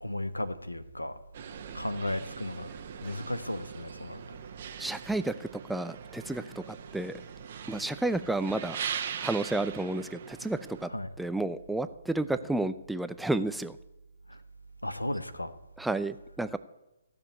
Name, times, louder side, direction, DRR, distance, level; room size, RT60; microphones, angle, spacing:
voice 1, 0.0-1.1 1.7-4.2 10.9-11.1 14.3-14.4 14.8-15.5, left 1 dB, 85° left, 1.2 m, -35 dB
sound 1, 1.3-10.8, right 8 dB, 45° right, 1.2 m, -41 dB
voice 2, 4.8-7.2 7.7-8.8 9.2-10.9 11.2-13.8 15.8-16.6, right 2 dB, 5° right, 0.4 m, -31 dB
15.5 x 6.9 x 9.3 m
figure-of-eight pair, 130°, 0 cm